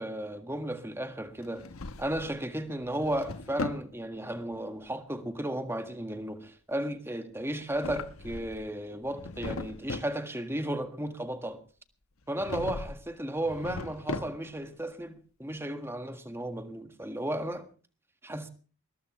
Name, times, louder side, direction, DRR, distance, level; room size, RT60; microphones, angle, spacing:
voice 1, 0.0-1.7 2.0-11.6 12.3-17.7 18.2-18.5, right 1 dB, 10° right, 1.6 m, -34 dB
Drawer open or close, 1.4-2.4 2.8-3.9 7.5-8.7 9.0-10.2 12.3-13.0 13.4-14.6, left 2 dB, 80° left, 1.2 m, -38 dB
21.0 x 20.5 x 3.2 m
head